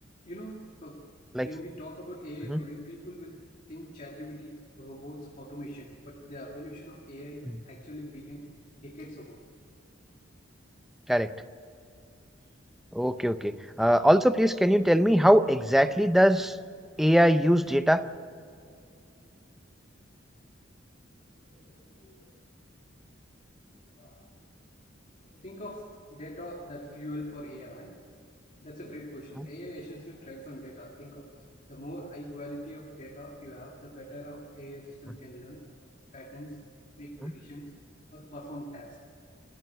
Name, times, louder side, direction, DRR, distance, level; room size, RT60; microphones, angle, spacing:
voice 1, 0.3-1.1 1.4-8.5 8.7-9.4 21.4-22.3 24.0-24.3 25.2-28.0 28.6-31.4 31.7-35.9 36.1-36.6 37.0-37.7 38.1-39.4, equal, 40° left, -2 dB, 2.1 m, -43 dB
voice 2, 12.9-16.6 17.0-18.0 37.2-37.3, equal, ahead, 11 dB, 0.6 m, -22 dB
28.5 x 12.5 x 8.2 m, 2.4 s
head